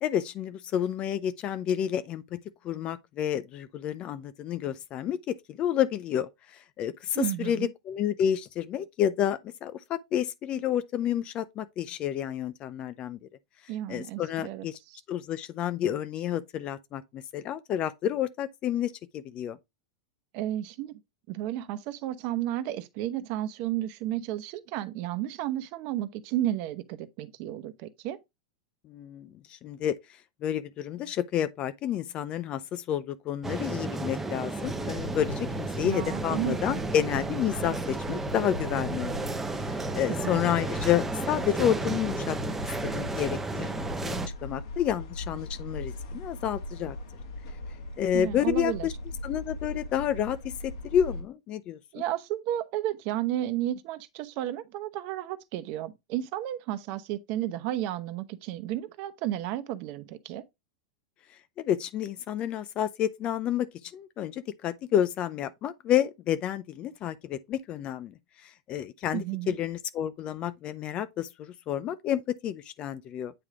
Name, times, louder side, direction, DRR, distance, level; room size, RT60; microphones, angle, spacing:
voice 1, 0.0-2.4 2.6-13.2 13.9-14.8 15.1-19.6 28.9-30.0 30.4-39.2 39.5-42.5 42.8-47.0 48.0-48.9 49.2-51.8 61.6-68.1 68.4-73.3, left 10 dB, 40° left, 0.5 m, -30 dB
voice 2, 7.1-7.7 13.7-15.0 20.3-21.0 21.3-28.2 35.8-36.6 40.1-40.4 48.1-48.9 51.9-60.4 69.1-69.6, right 13 dB, 55° right, 0.8 m, -32 dB
sound 1, 33.4-44.3, right 3 dB, 10° right, 0.9 m, -33 dB
sound 2, 34.6-51.2, left 2 dB, 70° left, 2.1 m, -39 dB
8.8 x 3.2 x 3.6 m
hypercardioid pair, 115°, 3 cm